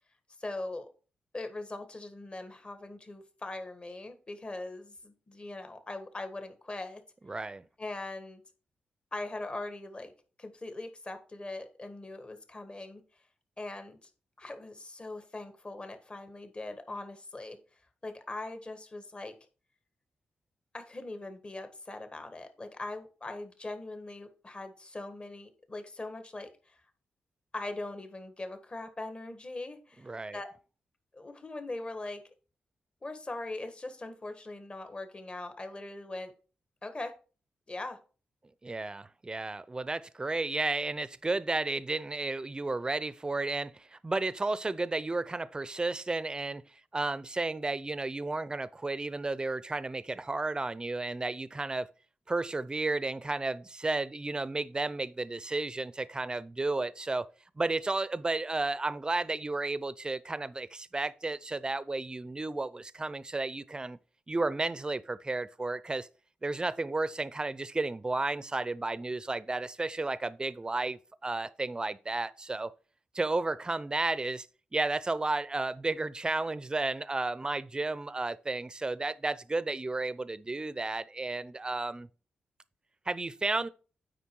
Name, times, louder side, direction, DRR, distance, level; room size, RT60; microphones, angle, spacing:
voice 1, 0.4-0.9 1.3-7.0 7.8-8.4 9.1-10.1 10.4-13.0 13.6-14.1 14.4-17.6 18.0-19.3 20.7-26.8 27.5-30.5 31.1-32.2 33.0-36.3 36.8-37.1 37.7-38.0, left 2 dB, 35° left, 1.5 m, -41 dB
voice 2, 7.3-7.7 30.0-30.4 38.6-46.6 46.9-51.9 52.3-57.3 57.6-64.0 64.3-66.1 66.4-72.7 73.1-74.5 74.7-82.1 83.1-83.7, right 2 dB, 25° right, 0.6 m, -33 dB
8.4 x 5.0 x 4.6 m
cardioid pair, 60°, 3 cm